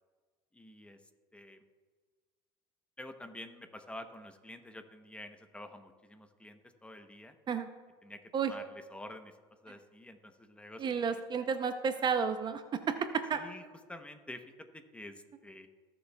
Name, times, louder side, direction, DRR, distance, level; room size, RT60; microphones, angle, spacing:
voice 1, 0.5-1.0 1.3-1.6 3.0-7.3 8.0-8.2 8.5-9.3 9.6-10.8 11.1-11.2 13.3-13.6 13.9-15.7, left 1 dB, 10° left, 7 dB, 0.8 m, -48 dB
voice 2, 10.8-13.4, right 6 dB, 35° right, 9 dB, 0.6 m, -32 dB
20.5 x 7.0 x 2.3 m, 1.5 s
supercardioid pair, 100°, 13 cm